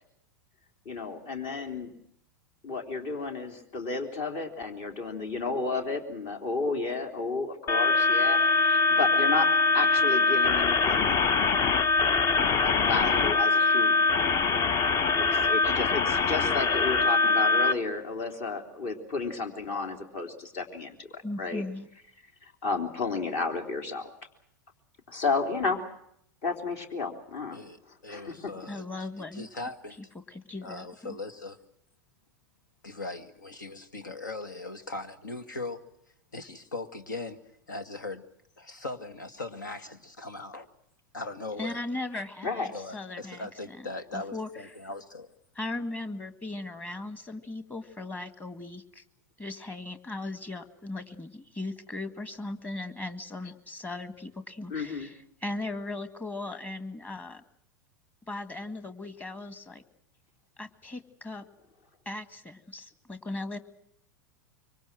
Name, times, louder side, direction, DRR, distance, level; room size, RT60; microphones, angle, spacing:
voice 1, 0.9-1.9 2.6-11.2 12.6-14.0 15.2-21.6 22.4-24.1 25.1-25.8 26.4-27.6 28.1-28.3 42.4-42.7 54.7-55.1, left 4 dB, 50° left, 3.5 m, -32 dB
sound 1, 7.7-17.7, left 3 dB, 35° left, 0.9 m, -23 dB
voice 2, 21.2-21.9 28.7-29.5 30.2-31.2 41.6-43.9 44.1-44.5 45.6-49.0 49.4-57.4 58.3-59.8 60.6-61.5 62.1-63.6, left 2 dB, 15° left, 1.9 m, -38 dB
voice 3, 27.5-28.9 29.2-30.1 30.6-31.6 32.8-35.8 36.3-37.4 37.7-38.2 38.6-40.7 41.1-41.8 42.7-45.3, left 2 dB, 80° left, 1.9 m, -39 dB
25.5 x 24.0 x 6.2 m
figure-of-eight pair, 90°, 10 cm